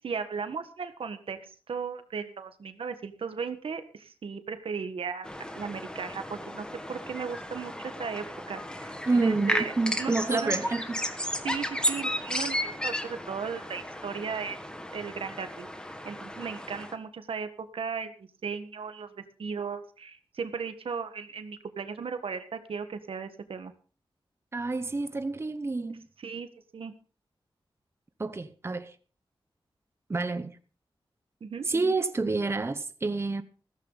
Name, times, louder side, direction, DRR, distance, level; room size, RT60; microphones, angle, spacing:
voice 1, 0.0-1.4 1.7-10.6 11.4-14.6 14.9-15.7 16.0-23.7 26.2-26.5 26.7-26.9 31.4-31.7, right 5 dB, 90° right, 1.6 m, -36 dB
sound 1, 5.2-16.9, equal, 10° left, 1.6 m, -34 dB
voice 2, 9.1-11.0 24.5-26.0 28.2-28.9 30.1-30.6 31.7-33.4, right 3 dB, 30° right, 0.9 m, -28 dB
15.5 x 14.0 x 4.0 m
wide cardioid pair, 135°, 9 cm